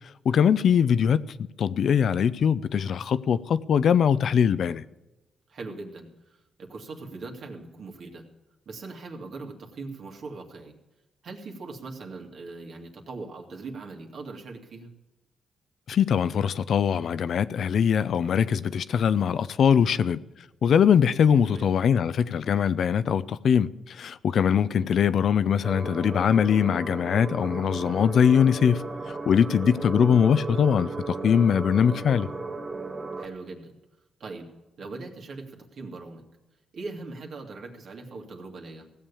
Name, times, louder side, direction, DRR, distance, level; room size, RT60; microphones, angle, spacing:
voice 1, 0.2-4.8 15.9-20.2 20.6-32.3, left 7 dB, 70° left, 0.5 m, -22 dB
voice 2, 5.5-8.3 8.7-10.7 11.2-14.9 19.7-20.1 21.5-21.7 24.7-25.0 29.4-29.6 33.2-33.7 34.2-34.5 34.8-36.3 36.7-38.9, right 3 dB, 65° right, 2.3 m, -40 dB
sound 1, 25.6-33.3, right 3 dB, 30° right, 1.7 m, -35 dB
16.5 x 7.4 x 8.5 m
cardioid pair, 75°, 0 cm